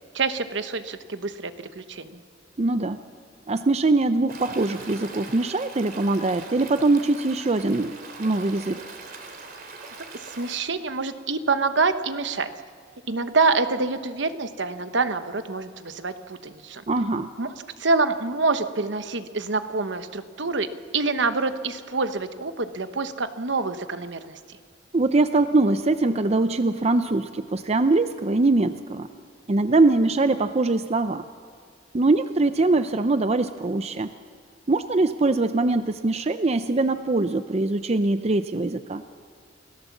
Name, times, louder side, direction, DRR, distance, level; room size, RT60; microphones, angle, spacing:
voice 1, 0.1-2.2 10.4-12.5 13.1-16.8 17.4-20.7 20.9-24.4, right 3 dB, 65° right, 10 dB, 1.0 m, -26 dB
voice 2, 2.6-3.0 3.5-8.8 16.9-17.3 24.9-29.1 29.5-31.2 31.9-34.1 34.7-39.0, right 2 dB, 35° right, 10 dB, 0.6 m, -22 dB
Stream, 4.3-10.6, right 4 dB, 50° right, 3.0 m, -41 dB
28.5 x 17.5 x 7.3 m, 2.1 s
head